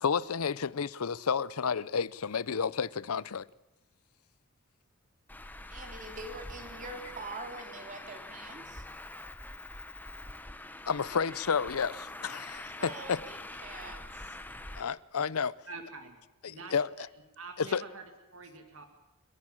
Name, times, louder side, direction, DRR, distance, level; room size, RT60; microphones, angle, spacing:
voice 1, 0.0-3.5 10.9-13.2 14.7-15.5 16.4-16.9 17.6-17.8, left 6 dB, 75° left, 0.6 m, -31 dB
Traffic noise roadway noise, 5.3-14.8, left 1 dB, 10° left, 0.8 m, -45 dB
voice 2, 5.7-8.8 12.8-14.4, right 2 dB, 35° right, 3.4 m, -44 dB
voice 3, 15.7-17.1 17.4-18.9, right 3 dB, 65° right, 2.1 m, -46 dB
29.0 x 11.0 x 8.8 m
head